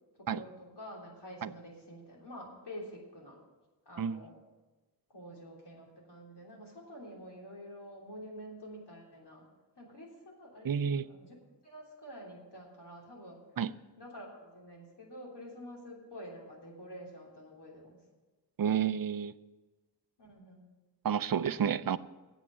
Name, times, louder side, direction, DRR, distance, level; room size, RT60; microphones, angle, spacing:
voice 1, 0.2-3.4 3.8-4.4 5.1-9.5 9.7-10.7 11.0-11.3 11.6-13.4 14.0-18.0 20.2-20.7, equal, 70° left, -2 dB, 3.3 m, -48 dB
voice 2, 10.6-11.0 13.6-13.7 18.6-19.3 21.0-22.0, right 8 dB, 55° right, 16 dB, 0.5 m, -30 dB
8.6 x 8.1 x 8.8 m, 1.2 s
wide cardioid pair, 70°, 42 cm